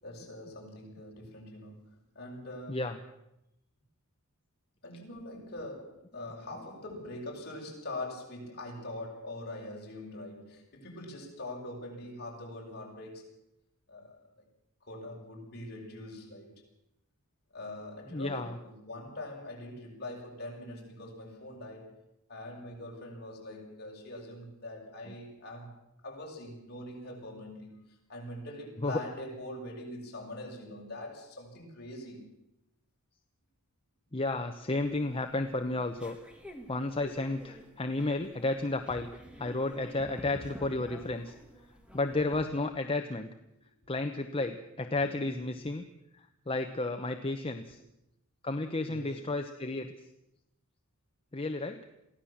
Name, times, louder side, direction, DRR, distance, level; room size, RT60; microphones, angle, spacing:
voice 1, 0.0-2.8 4.8-13.2 13.9-14.2 14.8-16.6 17.5-21.9 22.3-25.8 26.0-27.8 28.1-32.2 45.2-45.5 48.9-49.2, left 1 dB, 50° left, -1 dB, 6.6 m, -43 dB
voice 2, 18.1-18.6 25.1-25.2 28.8-28.9 34.1-36.2 36.7-39.1 39.4-41.3 41.9-43.3 43.9-45.8 46.1-47.8 48.4-49.9 51.3-51.8, left 2 dB, 25° left, 6 dB, 1.0 m, -32 dB
sound 1, 34.7-42.4, equal, 5° right, 2.5 m, -49 dB
23.0 x 16.0 x 7.4 m, 0.87 s
head